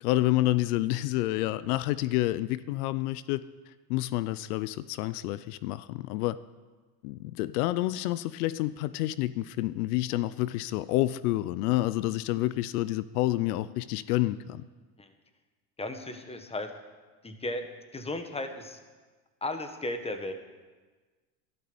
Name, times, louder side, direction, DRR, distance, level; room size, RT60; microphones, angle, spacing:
voice 1, 0.0-3.4 3.9-6.4 7.0-14.6, left 16 dB, 85° left, 17 dB, 0.6 m, -28 dB
voice 2, 15.8-16.7 17.2-18.8 19.4-20.3, left 2 dB, 15° left, 7 dB, 1.5 m, -35 dB
12.5 x 12.5 x 7.0 m, 1.3 s
supercardioid pair, 110°, 45 cm